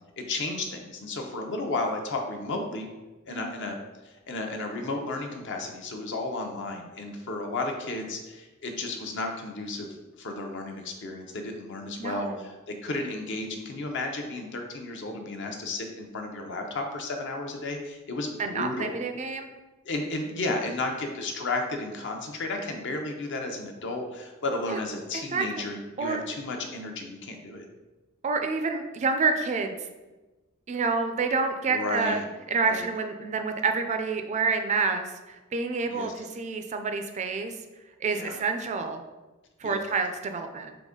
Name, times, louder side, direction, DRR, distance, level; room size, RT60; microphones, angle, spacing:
voice 1, 0.2-2.9 3.3-3.8 4.0-9.9 10.2-19.0 19.8-27.6 31.7-32.3 32.6-32.9 35.9-36.1 38.1-38.4 39.6-39.8, left 2 dB, 60° left, 3 dB, 0.6 m, -33 dB
voice 2, 12.0-12.4 18.4-19.5 24.7-24.8 25.1-25.7 26.0-26.2 28.2-29.7 30.7-32.2 32.5-37.5 38.0-39.0 39.6-40.8, right 4 dB, 35° right, 6 dB, 0.3 m, -28 dB
3.9 x 3.4 x 3.7 m, 1.1 s
head